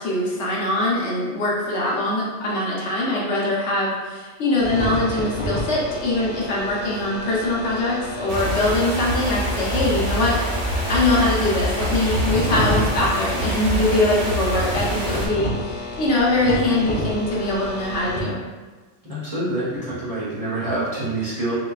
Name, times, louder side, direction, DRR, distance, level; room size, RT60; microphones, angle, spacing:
voice 1, 0.0-10.4 10.9-18.4, left 2 dB, 70° left, -5 dB, 1.0 m, -22 dB
sound 1, 4.6-18.2, left 1 dB, 50° left, 0.4 m, -31 dB
sound 2, 8.3-15.3, equal, 75° right, 1.0 m, -26 dB
voice 2, 19.0-21.5, right 2 dB, 35° right, -10 dB, 0.7 m, -26 dB
3.8 x 2.2 x 2.3 m, 1.3 s
omnidirectional pair, 1.2 m